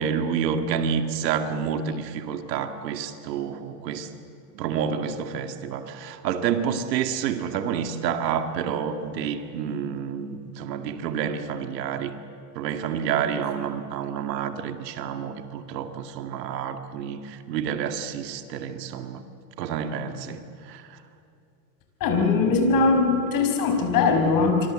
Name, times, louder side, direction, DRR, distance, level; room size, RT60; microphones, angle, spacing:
voice 1, 0.0-4.1 4.5-12.1 12.6-19.2 19.6-20.9, right 7 dB, 80° right, 8 dB, 2.2 m, -29 dB
voice 2, 22.0-24.7, left 4 dB, 40° left, 4 dB, 5.8 m, -21 dB
27.0 x 24.0 x 7.7 m, 2.6 s
supercardioid pair, 120°, 49 cm